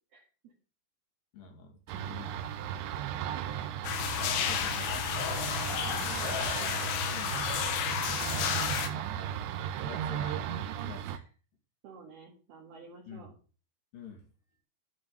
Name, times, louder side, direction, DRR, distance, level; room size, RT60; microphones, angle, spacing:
voice 1, 0.1-0.5 3.3-3.6 5.8-6.4 7.8-8.8 11.8-13.3, right 5 dB, 60° right, -2 dB, 3.5 m, -51 dB
voice 2, 1.3-2.7 4.5-5.1 6.0-6.3 7.0-7.5 8.9-11.3 13.1-13.3 13.9-14.2, left 5 dB, 50° left, 3 dB, 3.3 m, -48 dB
sound 1, 1.9-11.2, right 10 dB, 80° right, 2.8 m, -36 dB
sound 2, 3.8-8.9, left 8 dB, 85° left, 4.1 m, -32 dB
13.0 x 5.2 x 6.7 m, 0.38 s
omnidirectional pair, 5.8 m